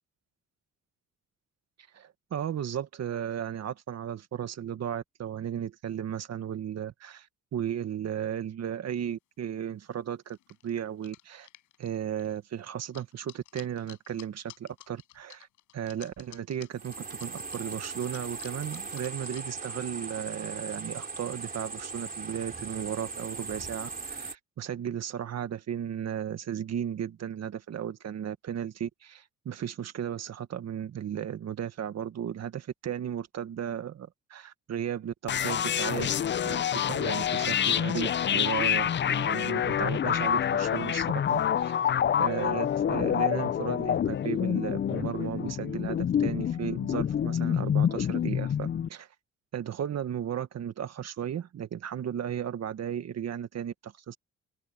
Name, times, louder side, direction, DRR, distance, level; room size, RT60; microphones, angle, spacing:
voice 1, 1.9-10.4 10.6-11.5 11.8-15.5 15.7-36.1 36.5-41.9 42.2-49.1 49.5-54.2, right 9 dB, 60° right, 1.7 m, -35 dB
sound 1, 9.1-9.2 10.3-19.4, left 15 dB, 90° left, 6.2 m, -52 dB
sound 2, 16.7-24.3, right 4 dB, 30° right, 3.0 m, -39 dB
sound 3, 35.3-48.9, left 9 dB, 40° left, 0.5 m, -27 dB
cardioid pair, 90°, 30 cm